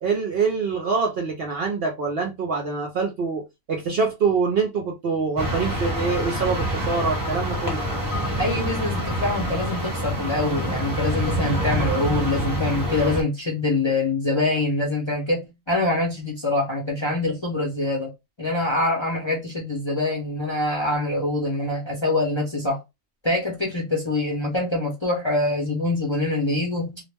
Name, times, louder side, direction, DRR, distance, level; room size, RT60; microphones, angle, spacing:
voice 1, 0.0-7.8, right 5 dB, 60° right, 0.7 m, -25 dB
sound 1, 5.4-13.2, equal, 20° right, 0.8 m, -26 dB
voice 2, 8.4-18.1 18.4-22.8 23.2-27.0, left 2 dB, 30° left, 0.6 m, -24 dB
2.4 x 2.1 x 3.2 m
omnidirectional pair, 1.4 m